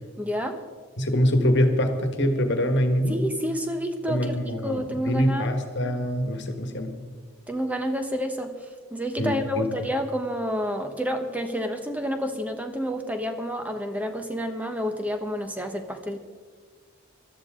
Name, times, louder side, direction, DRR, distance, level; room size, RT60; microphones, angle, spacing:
voice 1, 0.2-0.6 3.1-5.5 7.5-8.6 8.9-16.2, equal, 5° right, 6 dB, 1.0 m, -29 dB
voice 2, 1.0-3.2 4.1-6.9 9.2-9.7, equal, 55° left, 6 dB, 1.6 m, -24 dB
19.0 x 13.0 x 3.7 m, 1.6 s
head